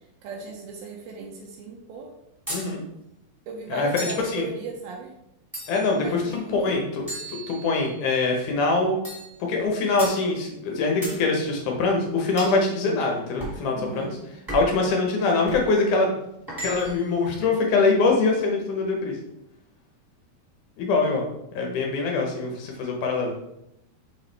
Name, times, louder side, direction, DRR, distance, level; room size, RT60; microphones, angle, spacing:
voice 1, 0.2-2.1 3.5-5.1 5.9-6.7 13.7-14.2, right 4 dB, 80° right, 0 dB, 2.5 m, -37 dB
voice 2, 2.5-2.8 3.7-3.9 4.3-4.4 5.7-9.0 9.5-14.2 14.5-16.1 16.6-19.1 20.8-21.3 21.5-23.4, left 3 dB, 70° left, 1 dB, 2.1 m, -23 dB
sound 1, 2.5-2.7 4.0-4.3 5.5-6.0 7.1-8.0 9.0-9.3 10.0-10.2 11.0-11.2 12.4-12.6 13.4-13.6 14.5-14.8 15.5-15.7 16.5-17.1, right 1 dB, 10° right, 1.4 m, -35 dB
6.0 x 4.7 x 3.3 m, 0.82 s
omnidirectional pair, 4.3 m